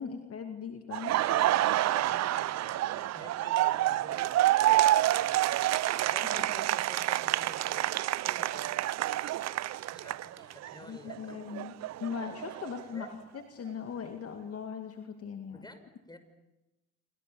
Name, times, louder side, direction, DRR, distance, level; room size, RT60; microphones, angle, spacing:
voice 1, 0.0-1.2 6.2-6.3 10.9-11.7 12.0-15.7, left 7 dB, 45° left, 6 dB, 2.5 m, -39 dB
Laughter, 0.9-10.7 11.1-13.1, right 14 dB, 50° right, 0.8 m, -28 dB
voice 2, 1.2-4.3 6.1-8.8 9.9-11.4 12.9-13.1 15.5-16.2, left 1 dB, 10° left, 9 dB, 5.9 m, -50 dB
27.5 x 25.5 x 7.1 m, 0.98 s
hypercardioid pair, 60°, 33 cm